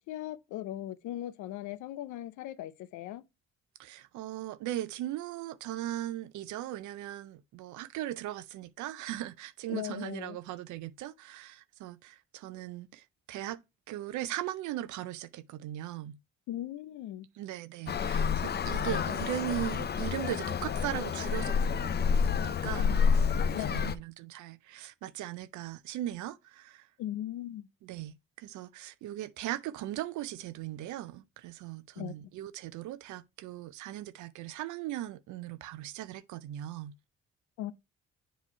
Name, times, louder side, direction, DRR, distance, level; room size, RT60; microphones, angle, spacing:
voice 1, 0.1-3.2 9.7-10.4 16.5-17.3 23.5-24.0 27.0-27.7 32.0-32.1 37.6-37.7, left 13 dB, 90° left, 0.6 m, -38 dB
voice 2, 3.8-13.6 13.9-16.2 17.4-26.9 27.8-37.0, right 14 dB, 80° right, 0.5 m, -39 dB
Traffic noise roadway noise, 17.9-24.0, left 6 dB, 35° left, 0.5 m, -29 dB
7.3 x 3.0 x 5.4 m
supercardioid pair, 65°, 29 cm